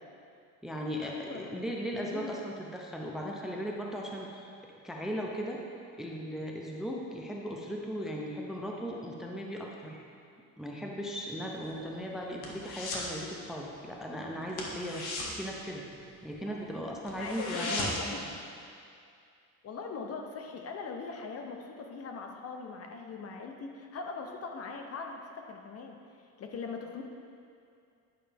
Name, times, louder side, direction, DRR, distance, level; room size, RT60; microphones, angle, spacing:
voice 1, 0.6-4.5 4.8-5.6 5.9-10.0 10.6-15.9 16.2-18.2, equal, ahead, -1 dB, 0.5 m, -37 dB
voice 2, 1.1-1.7 2.0-2.3 7.8-7.9 11.8-11.9 16.5-16.6 17.2-18.3 19.6-26.0 26.4-27.0, left 4 dB, 40° left, 3 dB, 0.7 m, -41 dB
sound 1, 11.6-13.2 13.4-13.7 14.0-14.1 14.5-16.4 16.7-16.8 17.1-18.2 18.5-18.6, left 2 dB, 75° left, 1.5 m, -37 dB
9.2 x 5.5 x 3.4 m, 2.4 s
cardioid pair, 130°, 38 cm